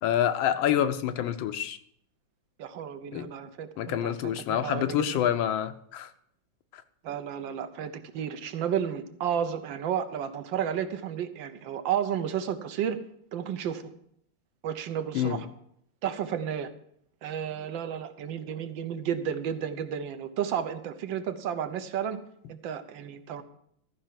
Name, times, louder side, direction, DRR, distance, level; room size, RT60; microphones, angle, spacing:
voice 1, 0.0-1.8 3.1-3.3 3.8-6.1 6.7-6.8 15.1-15.4, left 10 dB, 80° left, 1.5 m, -27 dB
voice 2, 2.6-5.2 7.0-13.0 13.3-13.9 14.6-15.5 16.0-16.7 17.2-22.2 22.5-23.4, right 9 dB, 70° right, 1.5 m, -32 dB
13.5 x 5.6 x 7.5 m
omnidirectional pair, 2.2 m